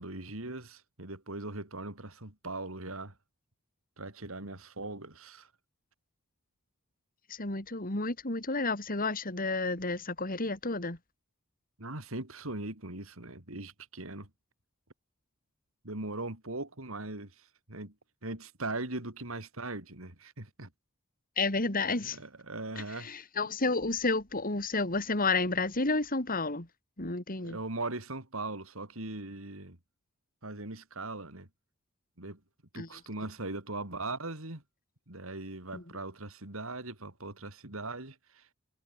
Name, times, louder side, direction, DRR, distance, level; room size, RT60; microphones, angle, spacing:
voice 1, 0.0-3.1 4.0-5.5 11.8-14.3 15.8-17.9 18.2-20.7 22.0-23.2 27.4-29.8 30.4-31.5 32.2-32.4 32.7-34.6 35.1-38.5, right 2 dB, 70° right, 4.0 m, -40 dB
voice 2, 7.3-11.0 21.4-22.2 22.8-26.7 27.0-27.6 32.7-32.9 35.7-35.8, left 3 dB, 45° left, 3.4 m, -31 dB
head